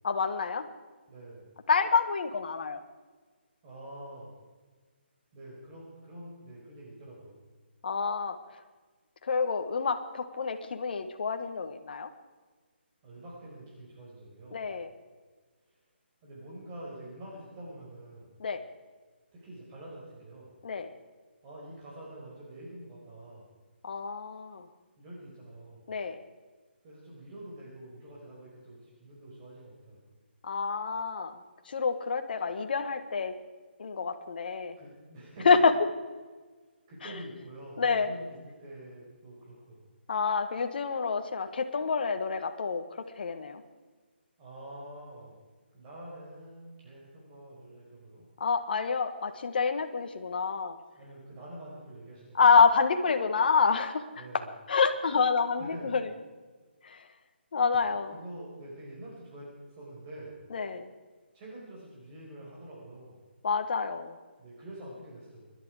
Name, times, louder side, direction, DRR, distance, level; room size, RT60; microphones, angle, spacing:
voice 1, 0.0-0.7 1.7-2.8 7.8-8.4 9.2-12.1 14.5-14.9 18.4-18.6 20.6-20.9 23.8-24.7 25.9-26.2 30.4-31.4 31.7-33.3 33.8-34.7 35.4-35.7 37.8-38.1 40.1-43.6 48.4-50.8 52.3-54.3 54.7-56.1 56.8-57.0 57.5-58.1 60.5-60.9 63.4-64.1, left 5 dB, 55° left, 7 dB, 1.4 m, -27 dB
voice 2, 1.1-1.5 3.6-4.4 5.3-7.4 13.0-14.7 15.7-15.8 16.2-18.3 19.3-20.5 21.4-23.5 25.0-25.8 26.8-30.0 34.8-35.5 36.9-39.9 44.4-45.4 45.7-48.2 51.0-52.4 54.2-54.5 55.6-56.0 58.1-60.4 61.3-63.2 64.4-65.5, right 1 dB, 25° right, -5 dB, 5.1 m, -46 dB
25.0 x 11.5 x 4.9 m, 1.4 s
figure-of-eight pair, 150°, 6 cm